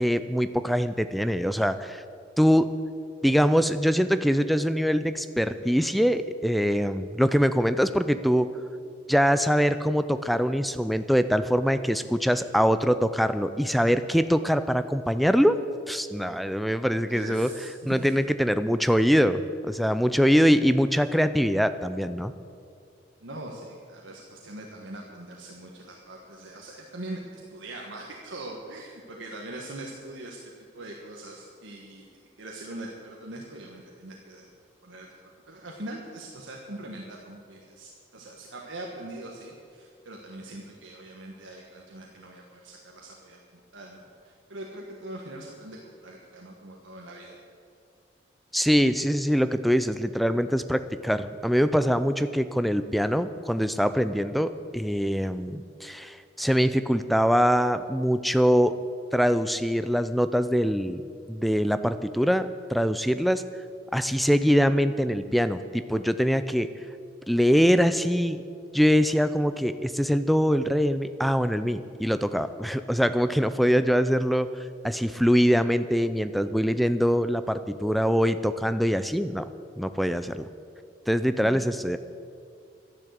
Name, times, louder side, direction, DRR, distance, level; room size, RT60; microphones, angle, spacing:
voice 1, 0.0-2.0 2.4-2.7 3.2-8.5 9.1-15.6 15.9-17.5 17.9-22.3 48.5-58.7 59.1-61.0 61.3-63.4 63.9-66.7 67.3-68.4 68.7-74.5 74.8-79.5 79.8-80.4 81.1-82.0, equal, ahead, 11 dB, 0.4 m, -23 dB
voice 2, 17.1-18.1 23.2-30.4 30.7-32.1 32.4-34.5 34.8-35.1 35.5-43.4 43.7-47.4, right 1 dB, 80° right, -1 dB, 1.4 m, -41 dB
12.0 x 10.5 x 8.1 m, 2.3 s
head